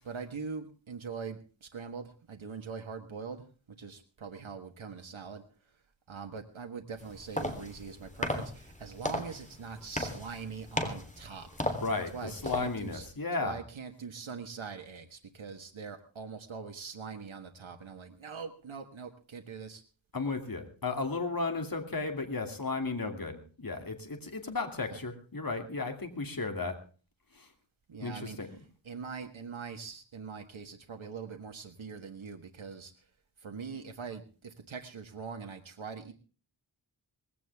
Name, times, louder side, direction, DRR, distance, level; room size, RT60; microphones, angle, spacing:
voice 1, 0.0-3.4 3.8-5.8 6.1-11.5 12.1-13.1 13.4-19.8 24.9-25.0 27.9-28.5 28.8-33.1 33.4-36.1, right 5 dB, 90° right, 4 dB, 1.6 m, -42 dB
sound 1, 7.0-13.1, left 1 dB, 15° left, 3.5 m, -37 dB
voice 2, 11.8-13.6 20.1-26.8 27.3-27.5 28.0-28.6, left 3 dB, 45° left, 5 dB, 2.8 m, -34 dB
19.5 x 16.5 x 3.6 m, 0.37 s
wide cardioid pair, 85°, 46 cm